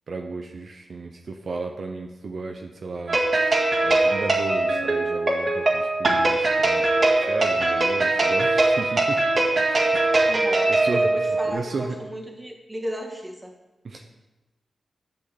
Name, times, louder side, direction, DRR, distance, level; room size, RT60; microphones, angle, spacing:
voice 1, 0.1-3.5 3.8-6.9 7.3-9.4 9.7-11.1 11.4-12.0 13.8-14.0, right 3 dB, 65° right, 3 dB, 0.9 m, -34 dB
sound 1, 3.1-11.5, right 2 dB, 50° right, 2.0 m, -21 dB
voice 2, 10.3-13.5, equal, 15° right, 1 dB, 2.0 m, -34 dB
8.8 x 6.2 x 7.8 m, 1.1 s
cardioid pair, 70°, 0 cm